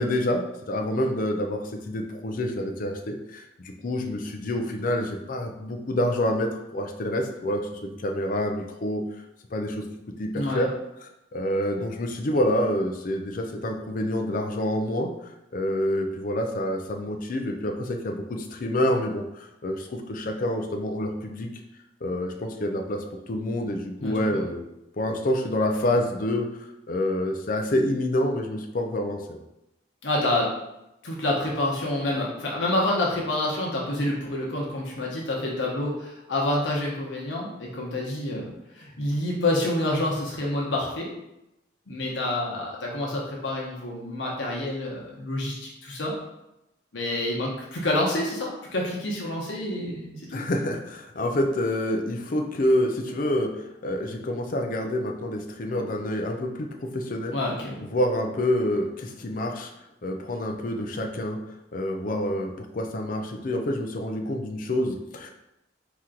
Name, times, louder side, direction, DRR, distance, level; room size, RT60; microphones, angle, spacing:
voice 1, 0.0-9.0 9.5-9.8 10.2-10.7 11.0-15.1 15.5-21.5 22.0-24.6 25.0-29.4 50.3-57.4 57.9-59.7 60.0-61.4 61.7-65.3, left 1 dB, 50° left, 3 dB, 0.5 m, -27 dB
voice 2, 24.0-24.4 30.0-30.5 31.0-41.1 41.9-46.1 46.9-50.4 57.3-57.9, left 1 dB, 90° left, -3 dB, 0.9 m, -28 dB
4.3 x 3.1 x 3.8 m, 0.87 s
head